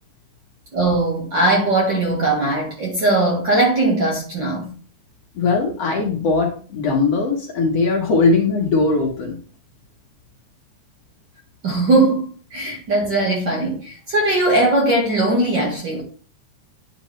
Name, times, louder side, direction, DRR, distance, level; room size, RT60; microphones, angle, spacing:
voice 1, 0.7-4.7 11.6-16.0, right 2 dB, 45° right, 1.9 m, -19 dB
voice 2, 5.4-9.4, left 3 dB, 55° left, 2.2 m, -19 dB
9.4 x 5.1 x 3.2 m
omnidirectional pair, 3.5 m